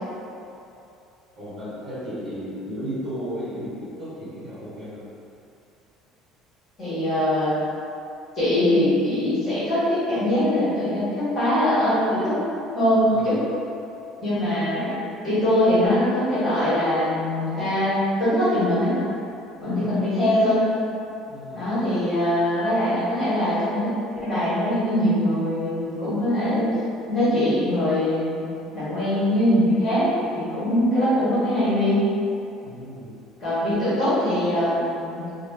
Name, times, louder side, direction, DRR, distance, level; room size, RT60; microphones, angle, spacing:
voice 1, 1.4-5.0 13.1-13.4 19.6-19.9 21.3-21.7 32.6-33.2, equal, 30° right, -12 dB, 1.2 m, -34 dB
voice 2, 6.8-7.5 8.3-12.4 12.7-13.4 14.2-14.9 15.2-19.0 19.6-20.6 21.5-23.9 24.2-26.7 27.1-28.4 28.7-32.1 33.4-35.2, left 1 dB, 25° left, -13 dB, 1.5 m, -22 dB
2.9 x 2.6 x 3.5 m, 2.7 s
cardioid pair, 175°, 0 cm